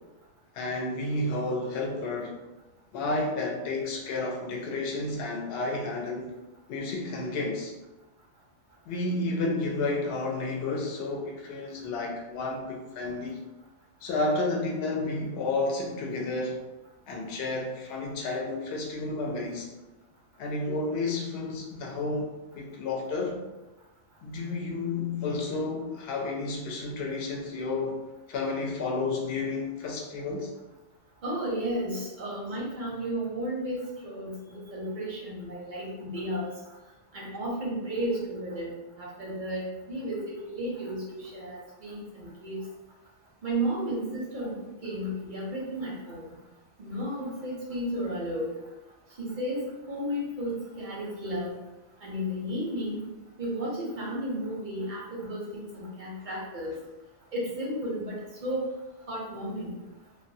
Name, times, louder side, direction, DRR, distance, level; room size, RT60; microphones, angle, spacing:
voice 1, 0.5-2.4 2.9-6.3 6.7-7.7 8.9-13.4 14.0-16.6 17.1-19.7 20.4-23.4 24.2-28.0 28.3-30.5, left 2 dB, 65° left, 0 dB, 0.7 m, -31 dB
voice 2, 31.2-36.5 37.1-42.7 43.4-46.3 46.8-48.6 49.2-51.6 52.0-53.0 53.4-56.8 57.3-58.7 59.1-59.8, equal, 55° right, -5 dB, 0.6 m, -33 dB
2.3 x 2.2 x 2.6 m, 1.0 s
omnidirectional pair, 1.2 m